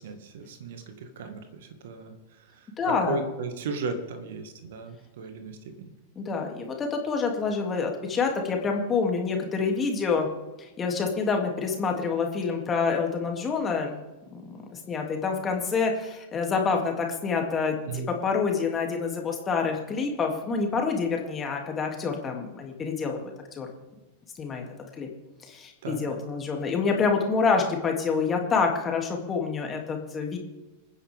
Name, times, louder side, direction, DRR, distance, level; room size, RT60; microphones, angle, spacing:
voice 1, 0.0-2.1 2.6-5.9 17.9-18.1 25.8-26.1, right 4 dB, 55° right, 7 dB, 2.1 m, -36 dB
voice 2, 2.8-3.2 6.1-10.3 10.6-14.0 14.3-23.7 24.3-24.6 25.0-25.1 25.4-30.4, left 5 dB, 20° left, 2 dB, 3.0 m, -27 dB
27.5 x 10.0 x 3.8 m, 1.1 s
figure-of-eight pair, 90°, 0 cm